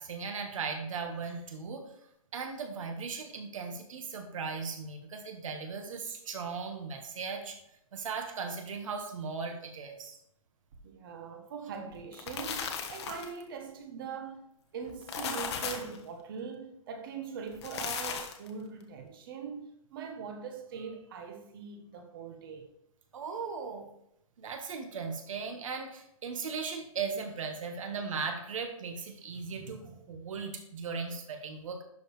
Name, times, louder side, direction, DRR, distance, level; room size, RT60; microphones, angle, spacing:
voice 1, 0.0-1.8 2.3-7.6 7.9-10.2 23.1-23.9 24.4-31.8, right 5 dB, 65° right, 1.6 m, -37 dB
voice 2, 10.8-22.7, right 6 dB, 40° right, 1.1 m, -42 dB
sound 1, 12.0-13.4 14.9-16.0 17.5-18.5, left 6 dB, 50° left, 1.2 m, -36 dB
11.5 x 5.0 x 3.3 m
hypercardioid pair, 160°, 18 cm